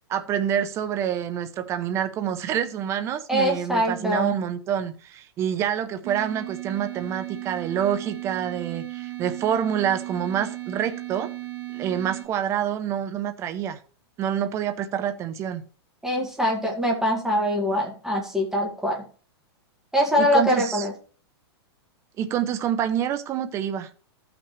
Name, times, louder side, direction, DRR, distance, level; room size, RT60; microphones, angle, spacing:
voice 1, 0.1-11.3 11.7-13.8 14.2-15.6 20.2-20.8 22.2-23.9, right 9 dB, 20° right, 0.7 m, -27 dB
voice 2, 3.3-4.4 16.0-19.0 19.9-20.9, equal, 5° right, 1.8 m, -23 dB
sound 1, 6.0-12.2, right 18 dB, 45° right, 2.3 m, -36 dB
14.0 x 5.9 x 3.2 m
hypercardioid pair, 160°, 14 cm